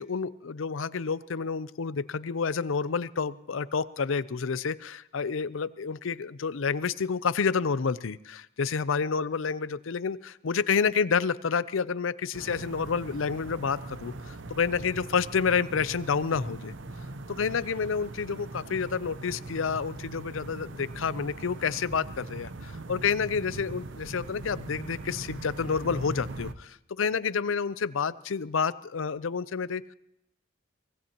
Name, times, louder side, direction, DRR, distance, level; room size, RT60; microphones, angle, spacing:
voice 1, 0.0-16.7 17.3-29.9, left 5 dB, 80° left, 16 dB, 0.6 m, -29 dB
sound 1, 12.3-26.5, right 2 dB, 65° right, 0.8 m, -41 dB
24.0 x 18.5 x 3.0 m, 0.82 s
head